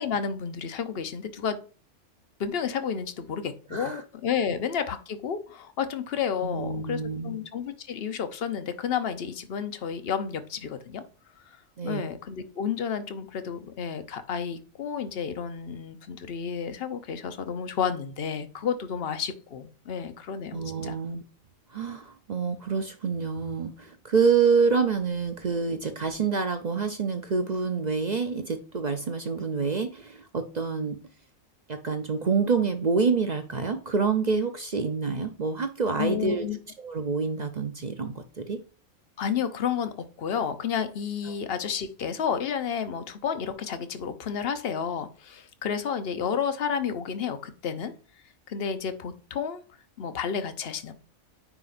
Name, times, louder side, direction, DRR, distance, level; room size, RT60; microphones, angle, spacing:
voice 1, 0.0-1.6 2.4-11.0 11.8-21.0 36.0-36.6 39.2-47.9 48.5-49.6 50.0-50.9, left 7 dB, 50° left, 1.0 m, -31 dB
voice 2, 3.7-4.0 6.4-7.4 11.8-12.1 20.5-21.2 21.7-31.0 31.7-36.5 36.8-38.6 41.3-41.4, right 5 dB, 45° right, 0.6 m, -27 dB
9.5 x 5.0 x 2.5 m
omnidirectional pair, 1.4 m